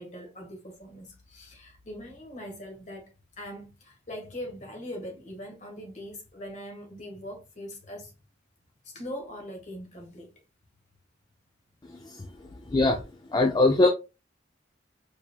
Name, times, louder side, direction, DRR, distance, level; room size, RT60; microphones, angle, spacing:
voice 1, 0.0-8.1 8.8-10.3 12.4-12.5, equal, 40° left, 1.5 m, -41 dB
voice 2, 12.7-13.0 13.3-13.9, left 2 dB, 20° left, 0.4 m, -21 dB
4.5 x 3.4 x 2.3 m
head